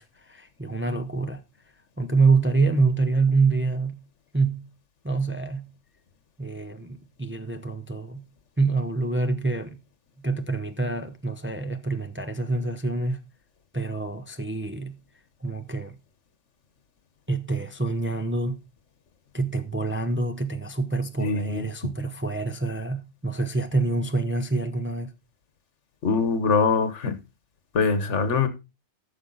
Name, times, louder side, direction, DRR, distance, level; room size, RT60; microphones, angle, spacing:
voice 1, 0.0-1.4 2.0-4.0 4.3-4.7 5.0-5.7 6.4-8.3 8.6-9.8 10.2-13.2 13.7-15.0 15.4-16.0 17.3-18.6 19.3-25.1, right 3 dB, 10° right, 0.7 m, -26 dB
voice 2, 21.2-21.7 26.0-27.1 27.7-28.5, left 5 dB, 85° left, 1.5 m, -23 dB
12.0 x 7.2 x 4.0 m
omnidirectional pair, 1.2 m